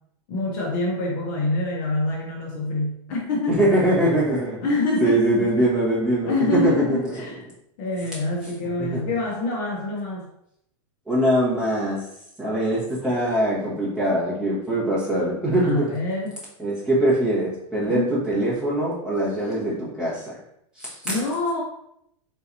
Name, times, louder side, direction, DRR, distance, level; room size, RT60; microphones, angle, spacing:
voice 1, 0.3-3.7 4.6-5.2 6.3-7.4 7.8-10.3 15.6-16.4 17.9-18.1 19.4-19.8 21.0-21.6, left 2 dB, 40° left, -1 dB, 0.7 m, -26 dB
voice 2, 3.6-4.6 5.0-7.1 8.8-9.1 11.1-12.0 12.4-15.9 16.6-20.4 20.8-20.9, right 1 dB, 5° right, -9 dB, 1.3 m, -22 dB
4.4 x 3.9 x 2.7 m, 0.76 s
supercardioid pair, 170°, 16 cm